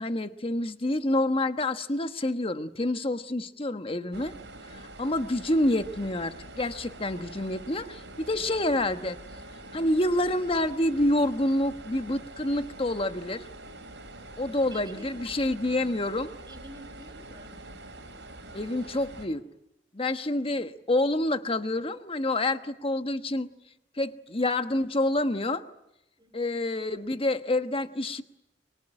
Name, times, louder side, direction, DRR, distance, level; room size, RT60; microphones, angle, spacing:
voice 1, 0.0-4.3 4.7-9.2 9.7-13.4 14.4-16.3 18.5-19.5 19.9-23.5 24.0-25.6 26.3-28.2, left 1 dB, 30° left, 9 dB, 1.2 m, -28 dB
sound 1, 4.1-19.3, right 2 dB, 80° right, 4.2 m, -45 dB
voice 2, 14.7-15.2 16.5-17.5 20.3-20.7 26.2-26.6, right 2 dB, 25° right, 6 dB, 4.5 m, -50 dB
24.0 x 23.5 x 10.0 m, 0.88 s
head